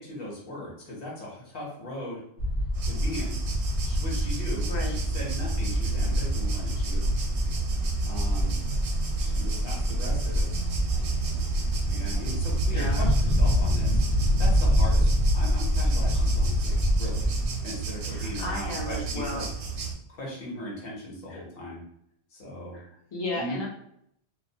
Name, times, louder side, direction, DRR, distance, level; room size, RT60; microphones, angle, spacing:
voice 1, 0.0-2.2 2.8-3.4 3.9-7.1 8.0-8.6 9.2-10.5 10.9-11.4 11.9-17.3 17.6-19.5 20.1-21.8 22.3-22.8 23.3-23.6, left 1 dB, 60° left, -4 dB, 0.9 m, -39 dB
sound 1, 2.4-17.5, equal, 85° left, 1.0 m, -26 dB
sound 2, 2.7-19.9, right 5 dB, 80° right, 0.8 m, -33 dB
voice 2, 12.7-13.0 18.0-19.5 21.3-21.4 22.7-23.7, left 1 dB, 40° left, -1 dB, 0.4 m, -34 dB
2.3 x 2.1 x 2.6 m, 0.71 s
omnidirectional pair, 1.1 m